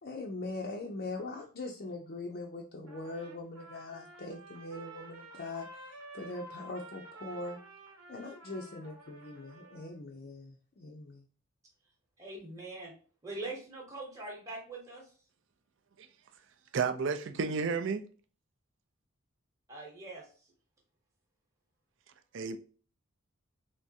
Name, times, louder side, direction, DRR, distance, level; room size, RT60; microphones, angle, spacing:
voice 1, 0.0-7.6 8.1-11.2, left 2 dB, 50° left, 0.4 m, -41 dB
Trumpet, 2.9-10.0, right 2 dB, 85° right, 1.0 m, -51 dB
voice 2, 12.2-12.9 13.2-15.1 19.7-20.3, right 2 dB, 15° right, 0.9 m, -42 dB
voice 3, 16.7-18.0 22.3-22.6, right 5 dB, 60° right, 0.4 m, -31 dB
3.5 x 3.1 x 2.7 m
head